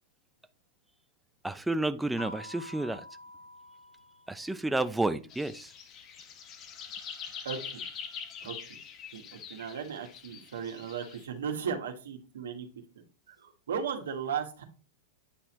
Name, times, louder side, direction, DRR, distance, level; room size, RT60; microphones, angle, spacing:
voice 1, 1.4-3.0 4.3-5.7, right 2 dB, 5° right, 0.5 m, -31 dB
sound 1, 2.2-4.9, left 2 dB, 75° left, 2.9 m, -48 dB
sound 2, 5.3-11.2, left 7 dB, 35° left, 0.9 m, -44 dB
voice 2, 7.4-7.8 8.4-8.6 9.1-9.2 9.5-12.7 13.3-14.6, right 7 dB, 85° right, 1.5 m, -36 dB
9.0 x 4.2 x 3.1 m
hypercardioid pair, 125°, 0 cm